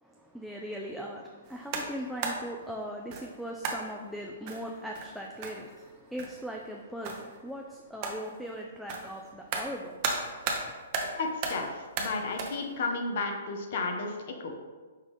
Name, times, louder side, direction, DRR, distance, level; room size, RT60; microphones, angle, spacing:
voice 1, 0.0-10.8, equal, ahead, -1 dB, 0.3 m, -40 dB
sound 1, 1.5-2.5 3.1-3.3 3.6-3.9 4.5-5.9 6.2-6.5 7.0-7.4 8.0-8.3 8.9-10.7 10.9-11.7 12.0-12.6, right 4 dB, 40° right, 0.6 m, -35 dB
voice 2, 11.1-14.5, left 3 dB, 55° left, 3 dB, 0.7 m, -33 dB
5.4 x 2.4 x 3.4 m, 1.4 s
hypercardioid pair, 130°, 0 cm